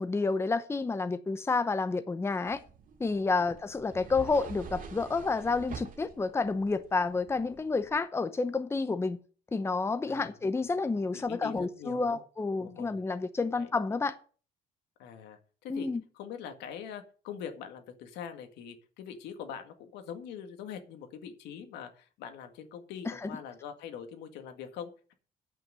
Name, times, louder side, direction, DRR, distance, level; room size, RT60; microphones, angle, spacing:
voice 1, 0.0-2.6 3.0-9.2 9.5-14.2 15.7-16.0 23.1-23.3, left 3 dB, 15° left, 0.7 m, -30 dB
sound 1, 2.5-8.0, right 6 dB, 55° right, 2.2 m, -47 dB
voice 2, 11.1-12.2 12.5-13.0 13.5-13.7 15.0-25.1, left 8 dB, 85° left, 1.9 m, -43 dB
9.2 x 5.9 x 7.6 m
cardioid pair, 110°, 17 cm